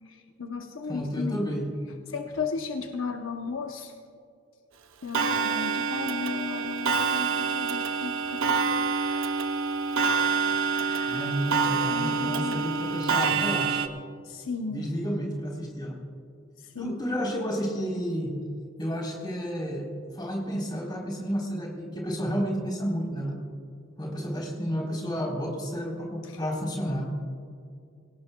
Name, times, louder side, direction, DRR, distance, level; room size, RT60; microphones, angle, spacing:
voice 1, 0.1-1.4 2.1-3.9 5.0-9.4 10.7-11.3 11.9-12.6 14.2-14.9 16.6-16.9 26.2-26.4, left 5 dB, 75° left, 4 dB, 0.8 m, -35 dB
voice 2, 0.8-1.6 11.1-13.9 14.7-16.0 16.8-18.4 18.8-19.9 20.1-23.4 24.0-27.1, equal, 20° left, -2 dB, 3.7 m, -31 dB
Clock, 5.1-13.9, right 5 dB, 75° right, 0.8 m, -27 dB
24.5 x 17.5 x 2.3 m, 2.4 s
head